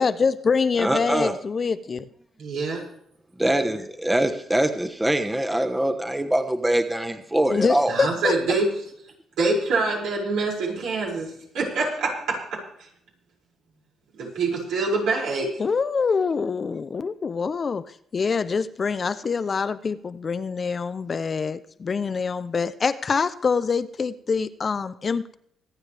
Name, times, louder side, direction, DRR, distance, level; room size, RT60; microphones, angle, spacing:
voice 1, 0.0-2.1 7.5-8.3 15.6-25.4, left 5 dB, 40° left, 13 dB, 0.7 m, -25 dB
voice 2, 0.8-1.3 3.4-7.9, right 1 dB, 10° right, 7 dB, 1.2 m, -23 dB
voice 3, 2.4-2.8 7.9-8.7 9.4-11.3 11.5-12.1 14.2-15.5, right 3 dB, 85° right, -3 dB, 5.9 m, -25 dB
25.0 x 9.2 x 3.4 m, 0.68 s
cardioid pair, 90°, 0 cm